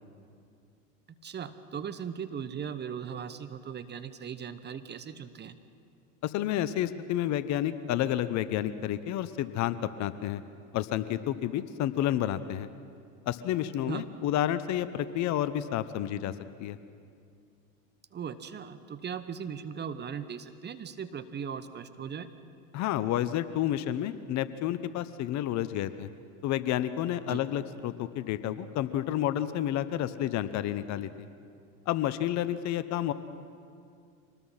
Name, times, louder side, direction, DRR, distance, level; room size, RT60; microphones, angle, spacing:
voice 1, 1.2-5.5 13.9-14.1 18.1-22.3 27.2-27.4, right 7 dB, 25° right, 11 dB, 1.0 m, -38 dB
voice 2, 6.2-10.4 10.7-12.7 13.3-16.8 22.7-26.1 26.4-31.1 31.9-33.1, left 12 dB, 40° left, 14 dB, 0.9 m, -30 dB
25.0 x 19.5 x 5.8 m, 2.4 s
hypercardioid pair, 95°, 42 cm